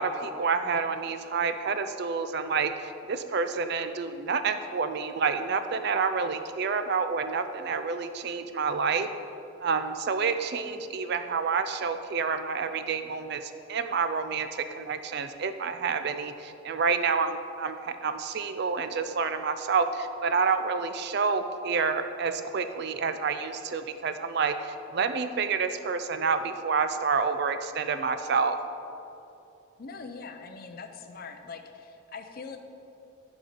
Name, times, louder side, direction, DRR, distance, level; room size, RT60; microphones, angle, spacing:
voice 1, 0.0-9.1 9.6-28.6, right 5 dB, 50° right, 9 dB, 0.4 m, -28 dB
voice 2, 29.8-32.6, left 4 dB, 45° left, 6 dB, 0.5 m, -42 dB
10.5 x 4.1 x 5.1 m, 2.8 s
head